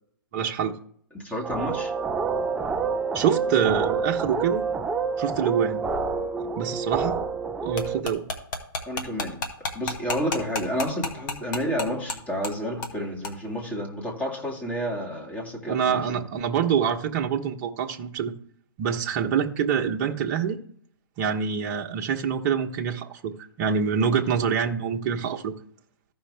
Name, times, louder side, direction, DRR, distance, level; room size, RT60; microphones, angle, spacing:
voice 1, 0.3-0.8 3.1-4.7 5.2-5.8 6.5-7.2 7.6-8.2 15.7-18.3 18.8-20.6 21.2-25.5, right 7 dB, 35° right, 1.0 m, -25 dB
voice 2, 1.1-1.9 8.9-16.3, equal, 10° left, 2.0 m, -30 dB
sound 1, 1.4-8.0, right 5 dB, 5° right, 0.4 m, -28 dB
sound 2, 7.8-12.2 12.4-12.5 12.8-13.0 13.2-13.3, left 3 dB, 55° left, 1.9 m, -30 dB
14.5 x 5.5 x 3.4 m
hypercardioid pair, 135°, 12 cm